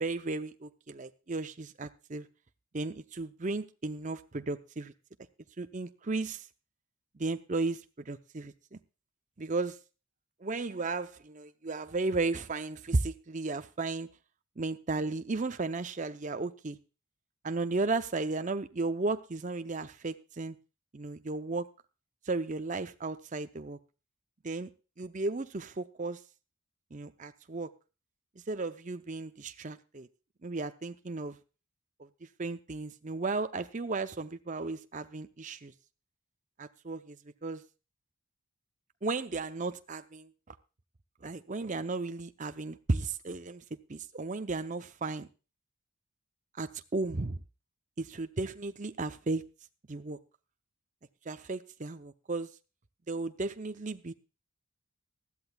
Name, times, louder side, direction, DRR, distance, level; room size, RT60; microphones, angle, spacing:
voice 1, 0.0-2.3 2.7-4.9 5.6-6.5 7.2-8.8 9.4-9.8 10.4-14.1 14.6-16.8 17.4-20.6 20.9-21.7 22.3-23.8 24.4-24.7 25.0-26.2 26.9-27.7 28.5-30.1 30.4-31.4 32.0-32.1 32.4-35.7 36.6-37.6 39.0-40.5 41.2-43.6 43.9-45.3 46.6-47.4 48.0-49.4 49.9-50.2 51.3-52.5 53.1-54.1, right 3 dB, 35° right, 9 dB, 0.6 m, -34 dB
20.0 x 13.5 x 2.3 m, 0.33 s
head